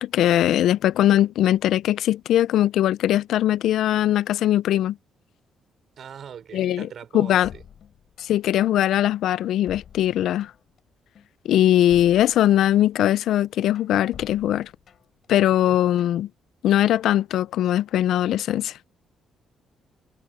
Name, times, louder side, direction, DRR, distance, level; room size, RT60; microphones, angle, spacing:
voice 1, 0.0-5.0 6.5-6.9 7.1-7.5 8.2-10.5 11.4-14.7 15.3-16.3 16.6-18.7, left 12 dB, 80° left, 0.5 m, -20 dB
voice 2, 6.0-7.6 15.5-15.8, right 8 dB, 60° right, 4.8 m, -41 dB
sound 1, 7.4-8.6 8.9-10.8 11.1-13.0 13.4-15.3 15.6-16.2, left 8 dB, 60° left, 7.3 m, -48 dB
cardioid pair, 90°, 0 cm